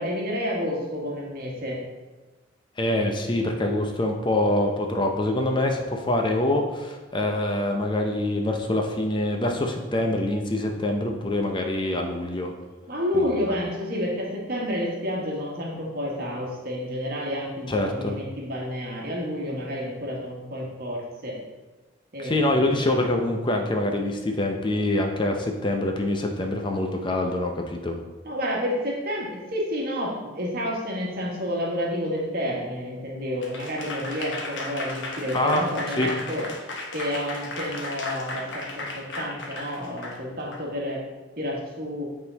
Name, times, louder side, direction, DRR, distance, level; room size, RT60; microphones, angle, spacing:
voice 1, 0.0-1.8 12.9-21.4 22.1-22.8 28.2-36.5 36.9-41.0 41.4-42.1, equal, 50° right, -2 dB, 1.6 m, -30 dB
voice 2, 2.8-12.5 13.1-13.2 17.7-18.2 22.2-28.0 35.3-35.6 36.0-36.1, left 1 dB, 25° left, 3 dB, 0.5 m, -25 dB
Applause / Crowd, 33.4-40.6, left 2 dB, 70° left, 1.1 m, -35 dB
8.5 x 3.8 x 4.0 m, 1.2 s
head